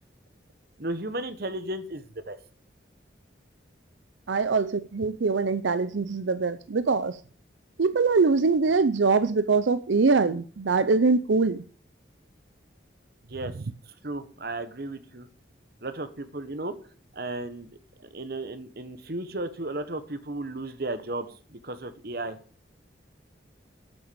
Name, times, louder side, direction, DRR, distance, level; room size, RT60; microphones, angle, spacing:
voice 1, 0.8-2.4 13.3-13.5 14.0-15.3 15.8-16.7 17.1-17.7 18.1-22.4, right 2 dB, 55° right, 1.3 m, -34 dB
voice 2, 4.3-7.2 7.8-11.6, right 4 dB, 85° right, 0.6 m, -23 dB
9.1 x 8.7 x 6.9 m
head